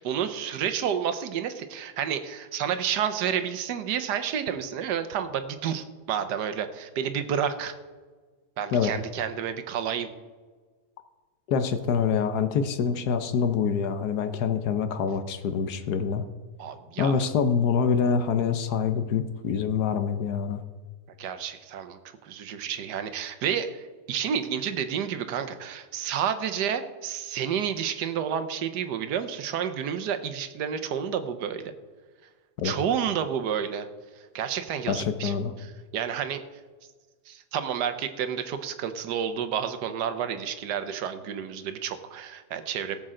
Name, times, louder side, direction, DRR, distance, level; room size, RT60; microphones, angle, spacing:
voice 1, 0.0-7.7 8.6-10.1 16.6-17.2 21.2-31.7 32.6-33.9 34.3-36.4 37.3-43.0, right 8 dB, 85° right, 9 dB, 1.4 m, -30 dB
voice 2, 11.5-16.3 17.0-20.6 32.6-32.7 34.9-35.5, left 6 dB, 75° left, 9 dB, 1.3 m, -25 dB
18.0 x 7.7 x 3.8 m, 1.4 s
omnidirectional pair, 1.8 m